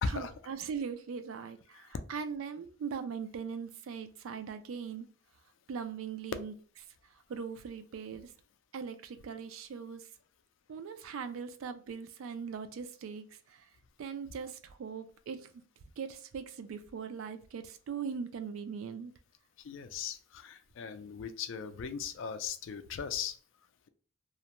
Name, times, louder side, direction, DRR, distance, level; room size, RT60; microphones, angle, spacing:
voice 1, 0.0-5.1 5.7-6.5 7.3-8.3 8.7-10.1 10.7-13.7 14.0-15.5 16.0-19.1, right 6 dB, 75° right, 0.3 m, -40 dB
voice 2, 19.6-23.4, left 6 dB, 65° left, 0.3 m, -38 dB
2.4 x 2.1 x 2.9 m
head